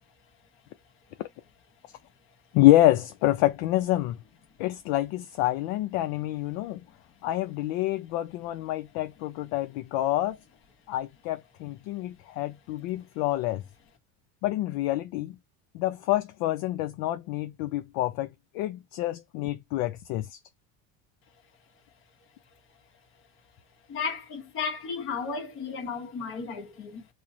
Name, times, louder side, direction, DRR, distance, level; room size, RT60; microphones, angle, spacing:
voice 1, 2.5-4.2 4.6-6.8 7.2-10.4 10.9-13.6 14.4-15.4 15.7-18.3 18.5-20.4, left 15 dB, 65° left, 0.5 m, -27 dB
voice 2, 23.9-27.1, left 5 dB, 40° left, 1.1 m, -34 dB
3.0 x 2.1 x 3.7 m
cardioid pair, 150°, 33 cm